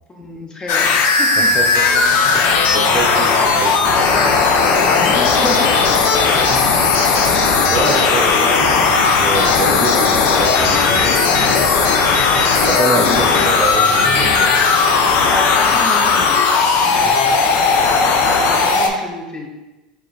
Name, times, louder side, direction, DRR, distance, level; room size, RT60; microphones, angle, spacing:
voice 1, 0.1-1.5 4.1-5.8 12.2-12.7 13.3-13.5 15.3-16.5 16.8-17.1 18.5-19.5, left 2 dB, 20° left, 1 dB, 0.7 m, -28 dB
sound 1, 0.7-18.9, left 4 dB, 50° left, 0.5 m, -15 dB
sound 2, 1.4-15.8, left 3 dB, 85° left, 0.7 m, -25 dB
voice 2, 1.4-1.7 1.9-2.1 2.3-2.5 2.7-4.0 6.5-6.6 7.7-11.2 12.7-14.6 17.1-17.2, right 3 dB, 25° right, 2 dB, 0.4 m, -25 dB
4.7 x 3.2 x 2.3 m, 1.1 s
hypercardioid pair, 85°, 4 cm